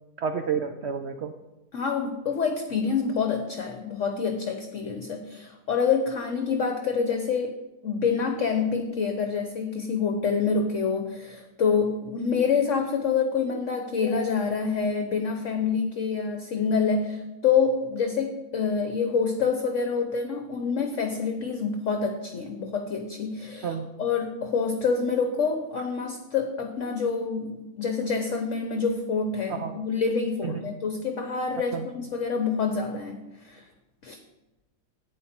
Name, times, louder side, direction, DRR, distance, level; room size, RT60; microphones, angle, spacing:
voice 1, 0.2-1.3 23.6-23.9 29.5-29.8 30.4-30.6 31.7-31.9, right 6 dB, 80° right, 6 dB, 0.6 m, -30 dB
voice 2, 1.7-7.6 7.8-33.2 33.4-33.6 34.0-34.2, left 5 dB, 55° left, 5 dB, 1.0 m, -27 dB
11.0 x 8.9 x 4.3 m, 1.0 s
omnidirectional pair, 1.9 m